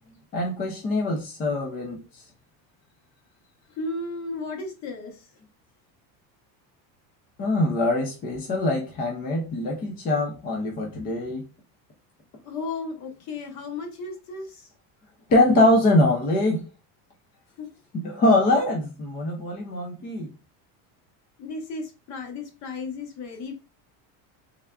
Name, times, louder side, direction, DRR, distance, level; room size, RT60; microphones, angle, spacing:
voice 1, 0.3-2.0 7.4-11.4 15.3-16.6 18.0-20.3, left 1 dB, 25° left, 0 dB, 0.4 m, -23 dB
voice 2, 3.7-5.3 12.4-14.7 17.6-17.7 21.4-23.6, left 3 dB, 40° left, 5 dB, 0.8 m, -34 dB
3.5 x 3.2 x 2.3 m, 0.32 s
cardioid pair, 170°, 42 cm